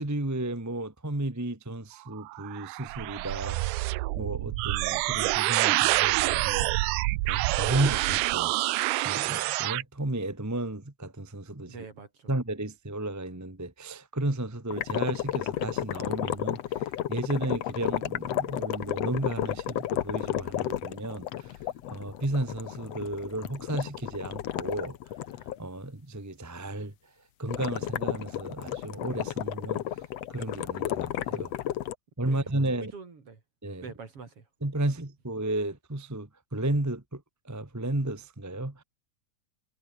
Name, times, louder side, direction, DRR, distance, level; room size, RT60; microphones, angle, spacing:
voice 1, 0.0-6.7 7.1-8.5 9.0-11.7 12.3-21.6 21.9-25.0 25.6-27.1 27.4-29.8 30.3-31.5 32.2-32.9 33.6-33.8 34.6-38.8, right 1 dB, 10° right, 0.9 m, -33 dB
sound 1, 2.1-9.8, right 20 dB, 85° right, 2.1 m, -27 dB
voice 2, 11.7-12.3 32.3-33.4 33.8-34.5, right 5 dB, 45° right, 4.4 m, -45 dB
sound 2, 14.7-25.6 27.5-31.9, left 12 dB, 65° left, 2.0 m, -32 dB
omnidirectional pair, 3.6 m